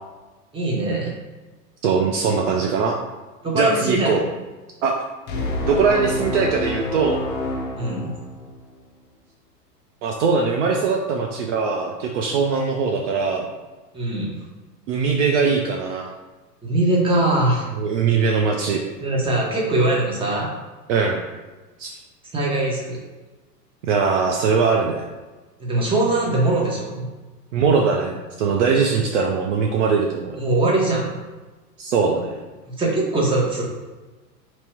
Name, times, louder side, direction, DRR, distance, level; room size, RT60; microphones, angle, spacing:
voice 1, 0.5-1.1 3.4-4.2 7.8-8.1 13.9-14.3 16.6-17.7 19.0-20.5 22.3-23.0 25.6-27.1 30.4-31.1 32.7-33.6, right 2 dB, 10° right, -3 dB, 0.9 m, -21 dB
voice 2, 1.8-3.0 3.5-4.2 4.8-5.0 5.6-7.2 10.0-13.5 14.9-16.1 17.8-18.8 20.9-21.2 21.8-22.0 23.8-25.0 27.5-30.3 31.8-32.4, right 5 dB, 50° right, 1 dB, 0.5 m, -21 dB
sound 1, 5.3-8.7, left 2 dB, 25° left, 0.5 m, -28 dB
2.9 x 2.9 x 4.4 m, 1.2 s
hypercardioid pair, 110°, 48 cm